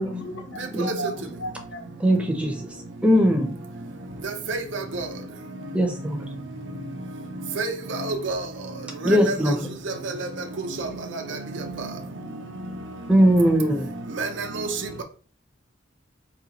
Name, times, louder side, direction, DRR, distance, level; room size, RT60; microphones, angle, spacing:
voice 1, 0.0-1.9 10.9-11.0, equal, 70° left, 0.9 m, -35 dB
voice 2, 2.0-2.5 3.0-3.6 5.7-6.2 9.0-9.6 13.1-13.9, equal, 5° right, 0.6 m, -19 dB
voice 3, 4.2-5.1 7.6-8.5 9.0-9.6 9.8-10.3 10.6-11.9 14.1-15.0, right 3 dB, 80° right, 0.5 m, -30 dB
4.1 x 2.3 x 2.9 m
head